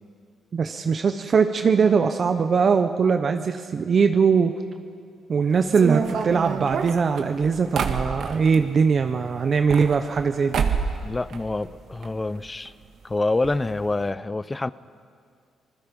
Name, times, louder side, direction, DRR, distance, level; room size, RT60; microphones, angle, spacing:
voice 1, 0.5-4.5 5.3-10.6, right 5 dB, 45° right, 7 dB, 0.9 m, -21 dB
sound 1, 5.7-8.6 9.5-10.3 10.5-11.0 11.3-12.1 12.4-12.5 12.7-12.8 13.4-13.6 13.8-14.0, right 6 dB, 65° right, 1.7 m, -27 dB
voice 2, 11.0-12.7 13.0-14.7, left 2 dB, 20° left, 17 dB, 0.6 m, -26 dB
27.5 x 20.0 x 5.4 m, 2.2 s
cardioid pair, 90°, 0 cm